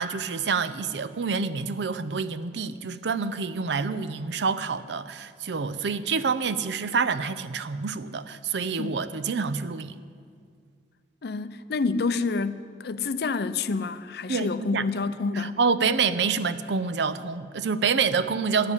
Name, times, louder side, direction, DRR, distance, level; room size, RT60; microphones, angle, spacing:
voice 1, 0.0-10.0 14.3-14.5 14.7-14.8 15.4-18.7, right 5 dB, 75° right, 0.5 m, -27 dB
voice 2, 11.2-15.6, left 4 dB, 60° left, 0.5 m, -28 dB
12.0 x 7.4 x 9.7 m
head